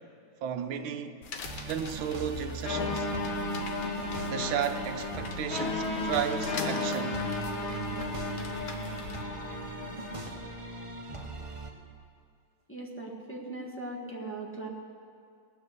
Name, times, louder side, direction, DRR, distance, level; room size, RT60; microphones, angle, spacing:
voice 1, 0.4-1.2 1.7-3.1 4.3-7.2, right 8 dB, 80° right, 1.6 m, -33 dB
sound 1, 1.2-9.2, left 4 dB, 60° left, 1.6 m, -44 dB
sound 2, 1.4-11.7, right 2 dB, 40° right, 0.4 m, -40 dB
sound 3, 2.7-10.3, left 2 dB, 80° left, 2.5 m, -34 dB
voice 2, 12.7-14.7, right 2 dB, 5° left, 1.2 m, -39 dB
19.0 x 9.8 x 6.6 m
omnidirectional pair, 2.2 m